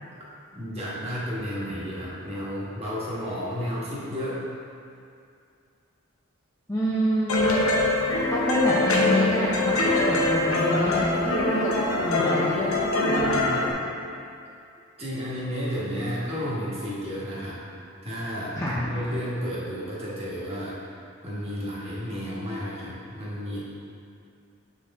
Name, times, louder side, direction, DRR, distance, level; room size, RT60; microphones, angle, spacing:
voice 1, 0.5-4.4 15.0-17.6 18.0-23.6, equal, 30° right, -8 dB, 1.3 m, -32 dB
voice 2, 6.7-7.5 8.3-13.8 18.6-18.8, equal, 15° left, -7 dB, 0.5 m, -27 dB
sound 1, 7.3-13.7, left 2 dB, 75° left, 0.8 m, -23 dB
7.2 x 4.2 x 3.6 m, 2.4 s
head